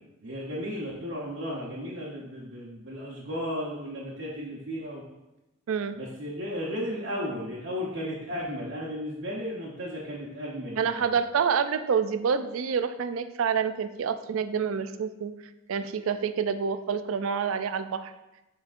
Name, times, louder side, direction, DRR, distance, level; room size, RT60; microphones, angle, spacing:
voice 1, 0.2-5.0 5.9-11.2, equal, 60° right, -5 dB, 1.0 m, -34 dB
voice 2, 10.8-15.3 15.7-18.1, right 6 dB, 80° right, 11 dB, 0.4 m, -27 dB
7.3 x 5.1 x 2.5 m, 0.98 s
head